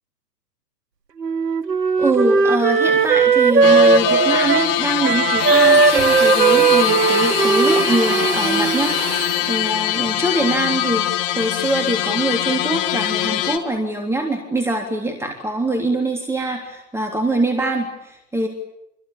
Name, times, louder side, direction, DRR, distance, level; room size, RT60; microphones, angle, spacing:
Wind instrument woodwind instrument, 1.2-8.9, right 5 dB, 85° right, 1.6 m, -17 dB
voice 1, 2.0-18.5, right 1 dB, 5° right, 3 dB, 3.4 m, -23 dB
sound 1, 3.6-13.6, left 14 dB, 35° left, 2.7 m, -22 dB
Domestic sounds home sounds, 5.3-9.8, right 5 dB, 25° right, 6.0 m, -27 dB
29.5 x 22.5 x 8.7 m, 0.82 s
hypercardioid pair, 130°, 48 cm